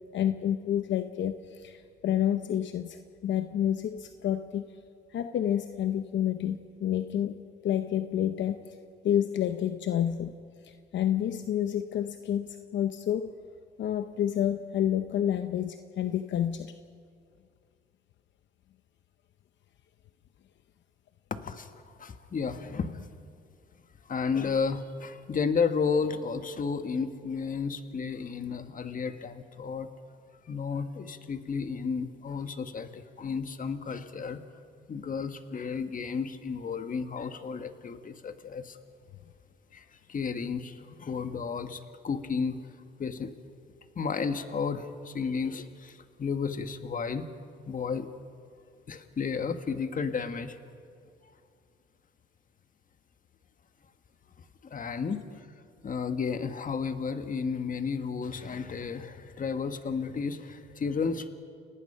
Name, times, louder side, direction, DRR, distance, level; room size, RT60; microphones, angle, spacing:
voice 1, 0.1-4.6 5.1-8.7 9.0-10.4 10.6-13.3 13.8-16.7, left 10 dB, 70° left, 9 dB, 0.8 m, -29 dB
voice 2, 21.3-23.1 24.1-29.9 30.5-34.4 34.9-38.8 39.7-42.6 43.0-43.3 43.9-47.3 47.7-48.1 48.9-50.6 54.6-55.5 55.8-61.3, left 5 dB, 45° left, 9 dB, 1.5 m, -32 dB
29.5 x 18.5 x 5.6 m, 2.3 s
cardioid pair, 90°, 20 cm